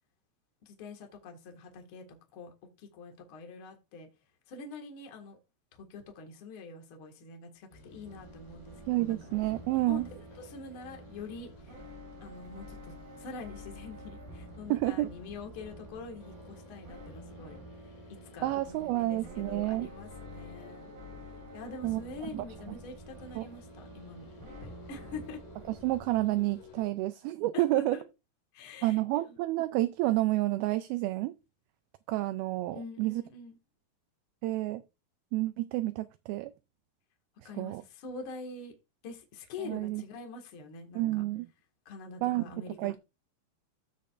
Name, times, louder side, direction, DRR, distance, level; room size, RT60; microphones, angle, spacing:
voice 1, 0.6-2.0 2.3-2.5 2.8-4.1 4.5-5.4 5.7-9.3 9.9-10.1 10.4-11.8 12.2-17.6 18.3-19.2 19.5-20.9 21.5-24.3 24.6-25.4 27.5-28.0 28.5-29.0 29.3-29.4 32.7-33.6 37.4-38.7 39.0-41.2 41.9-43.0, left 3 dB, 45° left, 1.9 m, -45 dB
sound 1, 7.7-26.8, left 2 dB, 70° left, 3.7 m, -54 dB
sound 2, 8.0-26.0, equal, 60° right, 6.9 m, -49 dB
voice 2, 8.9-10.1 14.7-15.1 18.4-19.9 21.8-22.0 22.3-22.8 23.4-23.5 25.7-28.0 28.8-31.3 32.1-33.2 34.4-34.8 35.3-36.5 37.4-37.8 39.6-40.0 41.0-41.5 42.2-42.5 42.8-43.0, right 17 dB, 80° right, 2.3 m, -30 dB
15.0 x 5.2 x 2.5 m
omnidirectional pair, 4.6 m